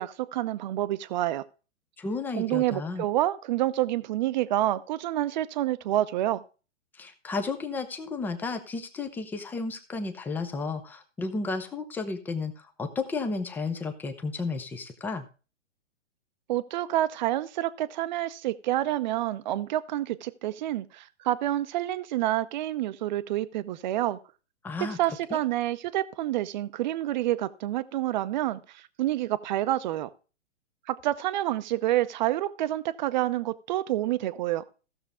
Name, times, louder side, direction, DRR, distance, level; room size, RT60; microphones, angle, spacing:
voice 1, 0.0-1.4 2.4-6.4 16.5-24.2 25.0-30.1 30.9-34.6, right 14 dB, 40° right, 0.7 m, -28 dB
voice 2, 2.0-3.0 6.9-15.3 24.6-25.0 25.3-25.4, left 3 dB, 5° left, 0.6 m, -33 dB
15.5 x 6.8 x 3.5 m
hypercardioid pair, 145°, 37 cm